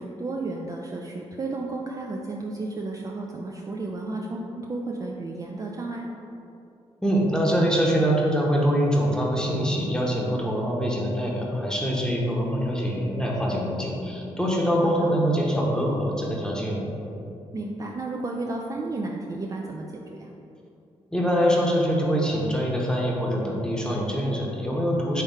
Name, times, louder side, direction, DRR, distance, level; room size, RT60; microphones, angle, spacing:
voice 1, 0.0-6.1 14.8-15.2 17.5-20.3, right 2 dB, 30° right, 0 dB, 0.4 m, -33 dB
voice 2, 7.0-16.9 21.1-25.2, equal, 5° left, -3 dB, 1.0 m, -24 dB
3.6 x 3.4 x 4.2 m, 2.7 s
supercardioid pair, 55°, 12 cm